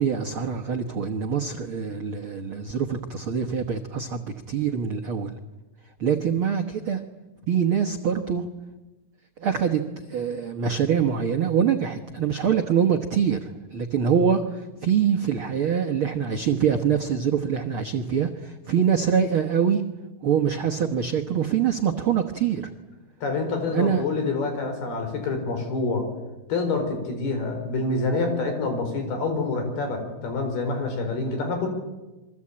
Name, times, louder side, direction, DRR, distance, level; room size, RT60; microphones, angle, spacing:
voice 1, 0.0-5.3 6.0-7.0 7.5-8.5 9.4-9.8 10.1-19.8 20.2-22.7 23.7-24.0, right 7 dB, 80° right, 4 dB, 1.1 m, -24 dB
voice 2, 23.2-26.1 26.5-31.7, left 3 dB, 75° left, 5 dB, 6.5 m, -27 dB
28.0 x 23.0 x 8.7 m, 1.1 s
omnidirectional pair, 4.5 m